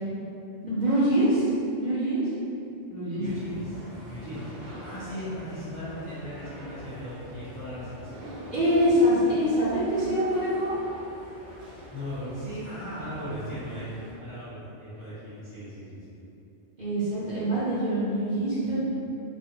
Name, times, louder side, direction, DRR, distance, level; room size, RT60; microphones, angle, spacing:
voice 1, 0.6-2.2 2.9-3.2 8.5-10.7 16.8-18.8, equal, 50° right, -11 dB, 0.6 m, -24 dB
voice 2, 3.2-8.2 11.5-16.2, equal, 30° left, -12 dB, 0.8 m, -38 dB
sound 1, 3.2-14.1, equal, 90° right, 1.0 m, -45 dB
3.1 x 2.0 x 2.9 m, 2.7 s
omnidirectional pair, 1.2 m